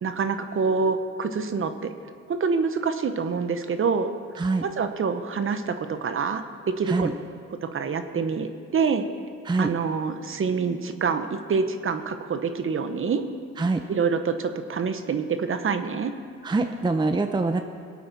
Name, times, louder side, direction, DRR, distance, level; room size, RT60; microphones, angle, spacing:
voice 1, 0.0-1.9 2.3-4.1 4.6-7.1 7.6-9.1 9.6-13.2 13.9-16.1, right 5 dB, 45° right, 9 dB, 1.0 m, -26 dB
voice 2, 16.4-17.6, right 3 dB, 15° right, 7 dB, 0.6 m, -24 dB
22.0 x 8.6 x 4.1 m, 2.1 s
cardioid pair, 90°, 30 cm